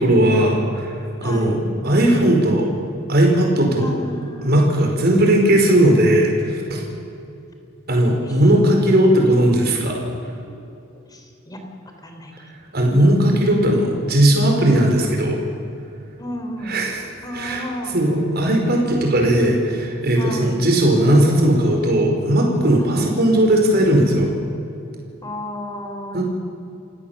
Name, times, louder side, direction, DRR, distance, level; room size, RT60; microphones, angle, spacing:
voice 1, 0.0-2.7 3.1-3.9 4.4-6.8 7.9-10.0 12.7-15.4 16.7-17.0 17.3-17.6 17.9-24.3 26.1-26.2, right 1 dB, 50° right, 1 dB, 4.7 m, -17 dB
voice 2, 1.2-1.6 3.8-4.7 8.2-8.4 8.8-8.9 9.2-10.6 10.9-11.6 12.0-12.5 16.2-16.8 17.2-18.0 20.2-20.6 22.8-23.1 25.2-26.2, left 1 dB, 20° left, 4 dB, 3.4 m, -34 dB
28.0 x 16.5 x 7.3 m, 2.6 s
head